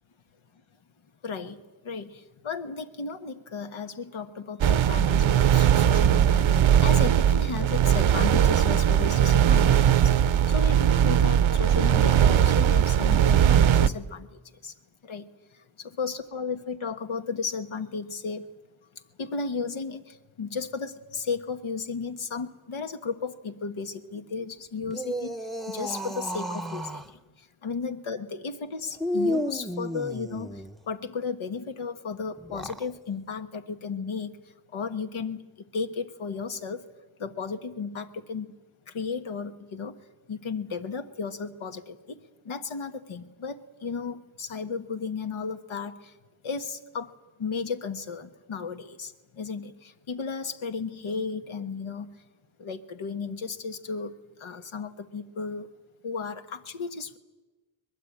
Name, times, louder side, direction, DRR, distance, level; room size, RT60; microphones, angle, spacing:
voice 1, 1.2-1.6 1.8-14.3 14.6-14.7 15.1-15.2 16.0-18.4 19.2-25.3 25.7-27.0 27.6-30.5 30.9-34.4 34.7-35.4 35.7-36.8 37.2-38.5 38.9-39.9 40.3-42.2 42.4-46.0 46.4-47.1 47.4-52.1 52.6-54.1 54.4-55.7 56.0-57.2, left 5 dB, 85° left, 8 dB, 1.5 m, -34 dB
sound 1, 4.6-13.9, right 9 dB, 75° right, 0.8 m, -20 dB
sound 2, 24.8-27.1 29.0-30.8 32.4-32.9, equal, ahead, 0.8 m, -32 dB
23.0 x 21.0 x 8.7 m, 1.2 s
wide cardioid pair, 100°, 48 cm